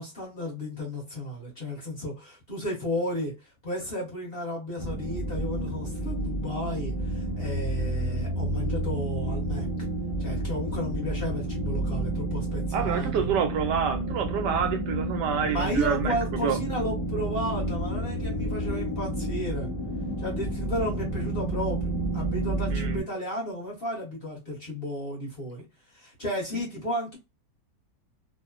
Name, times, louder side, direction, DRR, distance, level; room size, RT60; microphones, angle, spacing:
voice 1, 0.0-9.7 10.2-13.3 15.4-19.7 20.2-27.2, equal, 40° left, 1.0 m, -33 dB
sound 1, 4.8-23.0, right 1 dB, 20° left, 0.7 m, -30 dB
voice 2, 12.7-16.1 16.4-16.6 22.7-23.0, right 7 dB, 80° right, 1.2 m, -27 dB
3.0 x 2.1 x 2.4 m
omnidirectional pair, 1.9 m